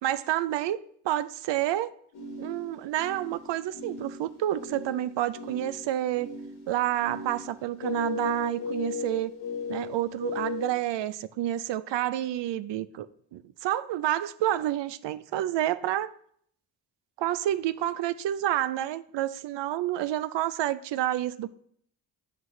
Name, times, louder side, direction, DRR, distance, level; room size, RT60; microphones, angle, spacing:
voice 1, 0.0-1.9 2.4-6.3 6.7-9.3 9.7-13.1 13.3-16.1 17.2-21.5, right 13 dB, 65° right, 0.5 m, -29 dB
sound 1, 2.1-10.7, left 4 dB, 70° left, 2.1 m, -37 dB
7.6 x 5.9 x 3.2 m
supercardioid pair, 50°, 46 cm